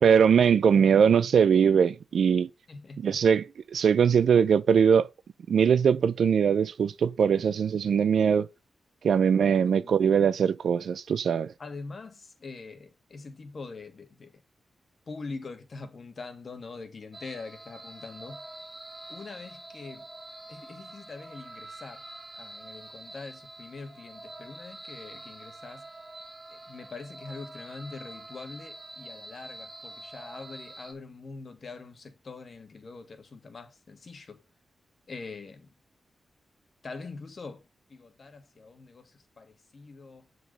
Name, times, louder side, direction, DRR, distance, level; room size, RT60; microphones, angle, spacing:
voice 1, 0.0-2.5 3.0-3.4 3.7-5.1 5.5-8.5 9.0-11.5, right 7 dB, 80° right, 0.5 m, -21 dB
voice 2, 2.7-3.2 9.6-9.9 11.6-14.4 15.1-18.4 19.1-20.0 20.5-22.1 22.3-25.9 26.5-34.4 35.1-35.7 36.8-40.3, left 4 dB, 55° left, 1.5 m, -43 dB
sound 1, 17.1-30.9, right 2 dB, 25° right, 1.7 m, -46 dB
7.2 x 4.0 x 4.7 m
cardioid pair, 60°, 0 cm